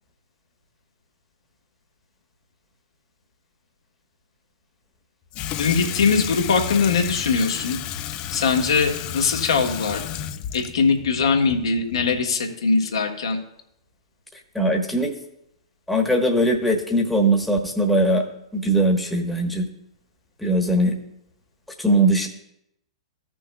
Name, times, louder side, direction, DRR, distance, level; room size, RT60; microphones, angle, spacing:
Water tap faucet / Sink (filling or washing), 5.3-12.4, left 10 dB, 30° left, 0.4 m, -32 dB
voice 1, 5.6-7.8 8.3-10.0 10.5-13.4, left 5 dB, 65° left, 2 dB, 1.4 m, -21 dB
voice 2, 14.5-15.1 15.9-18.2 18.5-19.7 20.4-21.0 21.8-22.3, right 1 dB, 5° left, 1 dB, 1.3 m, -20 dB
15.5 x 6.1 x 2.3 m, 0.79 s
figure-of-eight pair, 105°, 3 cm